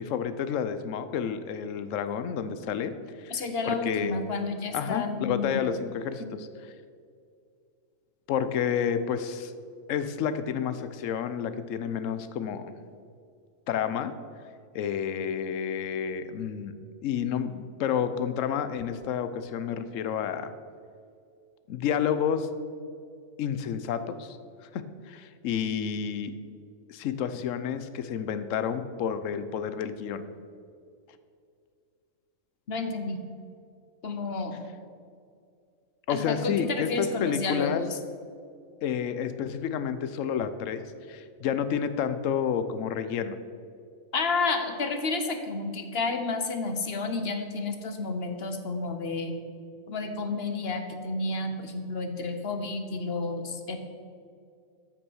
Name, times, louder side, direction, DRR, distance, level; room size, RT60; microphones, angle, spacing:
voice 1, 0.0-2.9 3.2-4.3 4.7-6.5 8.3-9.5 9.9-12.7 13.7-14.1 14.7-16.7 17.0-20.5 21.7-22.5 23.4-24.4 24.6-26.3 26.9-30.2 36.1-37.8 38.8-43.4, left 8 dB, 70° left, 11 dB, 1.0 m, -30 dB
voice 2, 3.3-5.7 6.2-6.3 32.7-33.2 34.0-34.7 36.1-38.0 44.1-49.4 49.9-53.8, left 3 dB, 50° left, 6 dB, 1.2 m, -31 dB
13.5 x 6.2 x 6.2 m, 2.3 s
omnidirectional pair, 1.4 m